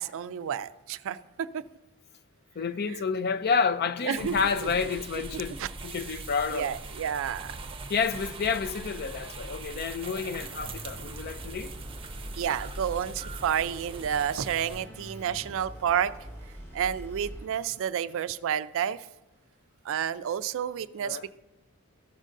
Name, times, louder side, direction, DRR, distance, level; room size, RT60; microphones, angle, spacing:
voice 1, 0.0-1.6 4.1-4.7 5.3-5.7 6.5-7.5 12.4-16.1 16.7-19.0 19.9-21.4, right 9 dB, 65° right, 0.3 m, -30 dB
voice 2, 2.6-6.7 7.9-11.7 21.0-21.3, left 5 dB, 50° left, 0.4 m, -29 dB
sound 1, 4.2-14.8, right 3 dB, 25° right, 0.7 m, -41 dB
sound 2, 10.4-18.1, equal, 10° left, 1.8 m, -45 dB
14.0 x 6.4 x 2.6 m
head